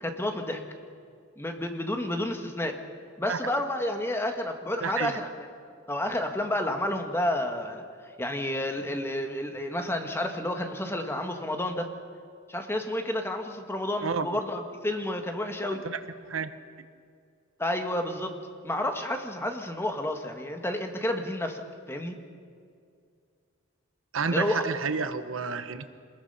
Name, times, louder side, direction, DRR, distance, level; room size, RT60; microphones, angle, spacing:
voice 1, 0.0-0.6 1.4-2.8 3.2-5.5 5.9-7.8 8.2-11.9 12.5-15.8 17.6-18.3 18.6-21.6 21.9-22.1 24.3-24.6, left 1 dB, 10° left, 4 dB, 1.6 m, -30 dB
voice 2, 4.8-5.2 14.0-14.4 15.7-16.5 24.1-25.9, right 5 dB, 75° right, 11 dB, 1.0 m, -30 dB
26.0 x 20.5 x 5.6 m, 2.2 s
head